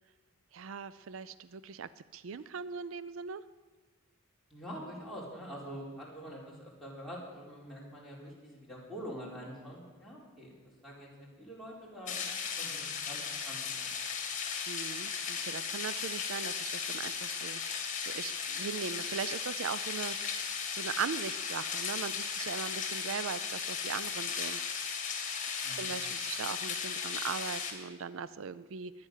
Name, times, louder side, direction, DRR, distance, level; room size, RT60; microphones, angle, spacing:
voice 1, 0.5-3.4 14.7-20.2 20.7-24.6 25.7-28.9, right 6 dB, 65° right, 16 dB, 0.4 m, -39 dB
voice 2, 4.5-10.5 10.8-13.9 25.6-26.0, equal, ahead, -5 dB, 4.3 m, -45 dB
sound 1, 12.1-27.7, left 6 dB, 35° left, 2.4 m, -36 dB
22.5 x 9.6 x 6.5 m, 1.3 s
head